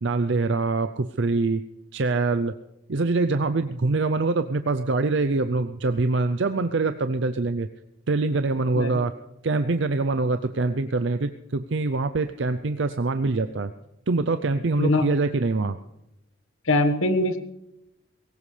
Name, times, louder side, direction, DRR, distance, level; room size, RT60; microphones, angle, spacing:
voice 1, 0.0-1.6 1.9-2.5 2.9-7.7 8.1-9.1 9.4-13.7 14.1-15.8, right 3 dB, 55° right, 9 dB, 0.6 m, -24 dB
voice 2, 16.7-17.4, left 2 dB, 75° left, 9 dB, 1.4 m, -22 dB
21.0 x 18.0 x 3.3 m, 0.88 s
head